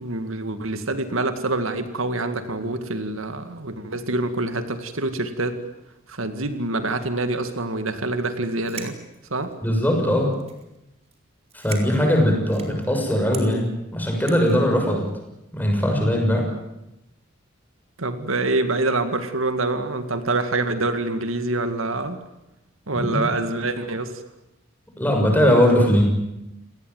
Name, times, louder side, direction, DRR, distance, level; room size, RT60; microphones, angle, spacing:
voice 1, 0.0-5.6 6.1-9.0 9.3-9.5 18.0-22.2 22.9-24.2, right 2 dB, 75° right, 9 dB, 2.1 m, -26 dB
sound 1, 8.5-9.7 10.3-10.8 11.0-11.2 11.4-12.9 13.3-13.5 14.3-14.6, right 6 dB, 30° right, 3.9 m, -40 dB
voice 2, 9.6-10.3 11.5-15.0 15.5-16.5 22.9-23.2 25.0-26.0, equal, 10° left, 2 dB, 6.4 m, -20 dB
29.5 x 18.5 x 9.4 m, 0.90 s
head